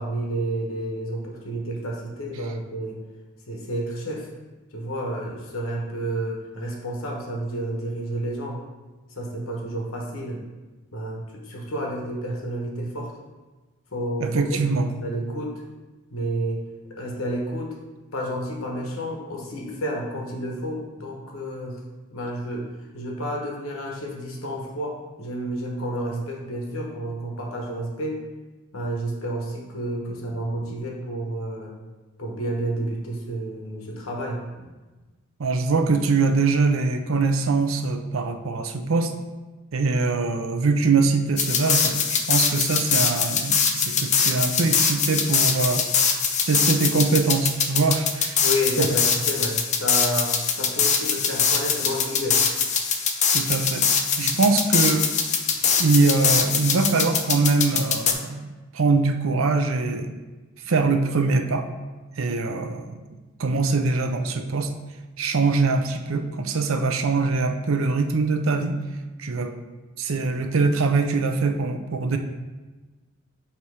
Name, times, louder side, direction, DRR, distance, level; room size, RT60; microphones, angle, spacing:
voice 1, 0.0-3.0 3.5-4.3 4.7-8.6 9.1-10.4 10.9-13.1 13.9-15.6 16.1-16.6 17.0-17.7 18.1-21.8 22.1-22.7 22.9-28.2 28.7-31.7 32.2-34.4 48.4-52.4, right 1 dB, 90° left, -1 dB, 1.1 m, -30 dB
voice 2, 14.2-14.9 35.4-39.1 39.7-45.8 46.5-48.4 48.8-48.9 53.3-53.8 54.2-55.1 55.8-60.1 60.7-61.6 62.2-63.0 63.4-64.7 65.2-68.8 69.2-69.5 70.0-72.2, right 3 dB, 75° right, 6 dB, 0.6 m, -23 dB
sound 1, 41.4-58.1, left 6 dB, 35° left, 0.5 m, -23 dB
6.8 x 2.9 x 4.8 m, 1.2 s
head